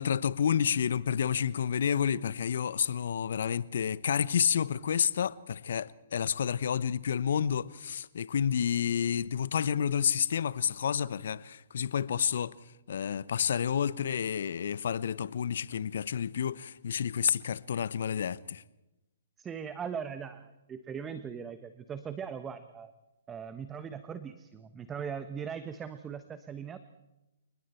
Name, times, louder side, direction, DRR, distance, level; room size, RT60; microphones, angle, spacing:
voice 1, 0.0-12.5 12.9-18.6, left 8 dB, 60° left, 1.0 m, -30 dB
voice 2, 19.4-22.9 23.3-26.8, right 7 dB, 15° right, 1.2 m, -40 dB
29.5 x 20.0 x 4.5 m
figure-of-eight pair, 130°, 0 cm